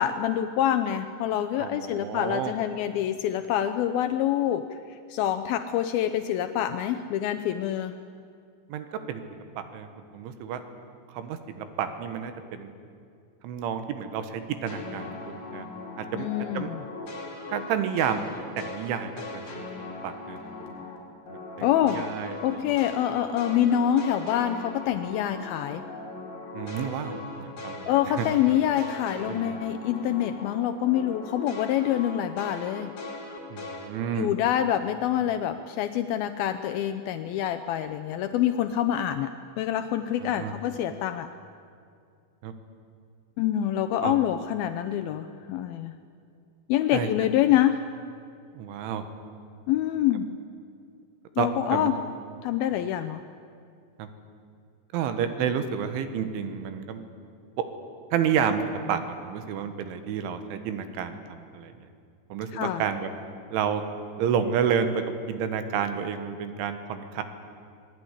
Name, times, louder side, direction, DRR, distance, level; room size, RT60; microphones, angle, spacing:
voice 1, 0.0-7.9 16.1-16.8 21.6-22.0 22.4-25.8 27.9-32.9 34.2-41.3 43.4-46.0 46.7-47.8 49.7-50.4 51.4-52.0 52.4-53.2 62.5-62.8, left 11 dB, 85° left, 8 dB, 2.1 m, -26 dB
voice 2, 1.6-2.5 8.7-9.2 9.6-10.6 11.1-12.7 13.4-15.7 16.0-16.3 16.5-16.7 17.5-18.2 18.6-20.4 21.8-22.6 26.5-27.9 28.2-28.3 29.3-29.5 33.5-34.3 40.2-40.5 42.4-42.5 44.0-44.2 46.9-47.1 48.6-49.1 51.4-51.9 54.0-54.1 54.9-57.0 57.6-57.7 58.1-61.7 62.3-63.1 63.5-63.8 64.2-67.2, right 7 dB, 90° right, 9 dB, 3.9 m, -30 dB
sound 1, 14.7-21.0 21.3-30.6 30.9-33.9, left 3 dB, 50° left, 5.5 m, -39 dB
26.5 x 20.0 x 9.9 m, 2.3 s
omnidirectional pair, 5.3 m